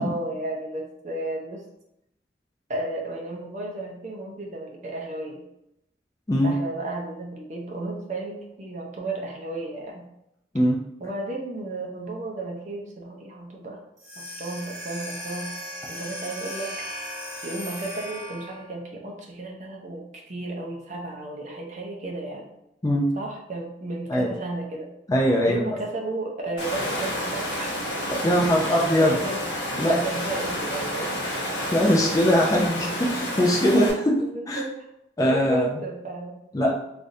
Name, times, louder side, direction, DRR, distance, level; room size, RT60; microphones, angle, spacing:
voice 1, 0.0-1.6 2.7-5.4 6.4-10.1 11.0-13.8 14.2-15.5 15.9-16.7 17.4-22.5 23.1-24.9 25.5-27.8 28.4-31.5 31.8-31.9 34.2-34.7 35.2-36.4, right 2 dB, 40° right, -1 dB, 0.6 m, -33 dB
voice 2, 6.3-6.6 10.5-10.8 22.8-23.1 24.1-24.3 25.1-25.6 28.1-29.1 29.8-30.0 31.7-34.6 35.2-35.7 36.5-36.7, equal, 20° left, -2 dB, 0.4 m, -21 dB
sound 1, 14.0-18.7, equal, 20° right, 1.0 m, -37 dB
Water, 26.6-33.9, equal, 85° left, 0.9 m, -30 dB
3.3 x 2.5 x 2.6 m, 0.82 s
head